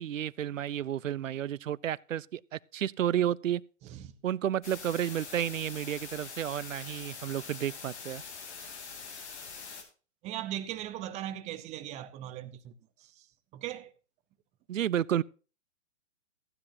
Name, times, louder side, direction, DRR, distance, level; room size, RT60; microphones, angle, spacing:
voice 1, 0.0-3.6 4.2-8.2 14.7-15.2, right 10 dB, 80° right, 0.6 m, -31 dB
voice 2, 3.8-4.1 10.2-12.7 13.0-13.3 13.5-13.9, right 12 dB, 15° right, 0.7 m, -39 dB
sound 1, 4.6-9.8, left 5 dB, 60° left, 3.3 m, -44 dB
15.0 x 9.9 x 2.7 m
hypercardioid pair, 135°, 38 cm